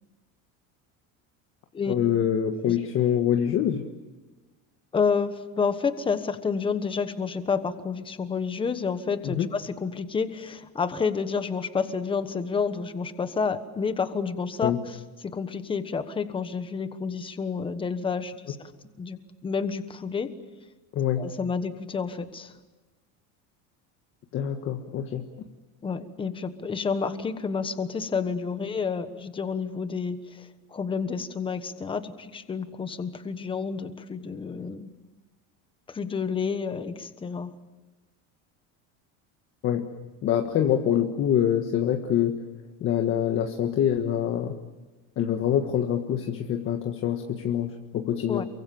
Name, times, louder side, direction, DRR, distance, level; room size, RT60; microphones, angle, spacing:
voice 1, 1.9-3.9 9.2-9.5 14.6-14.8 20.9-21.3 24.3-25.2 39.6-39.9 40.2-42.4 42.8-44.6 45.2-48.4, left 9 dB, 35° left, 4 dB, 1.6 m, -25 dB
voice 2, 4.9-14.7 15.2-18.7 19.0-20.3 21.2-22.5 25.8-34.9 35.9-37.5 48.3-48.4, left 5 dB, 15° left, 10 dB, 1.3 m, -29 dB
29.0 x 24.0 x 7.1 m, 1.2 s
cardioid pair, 175°, 38 cm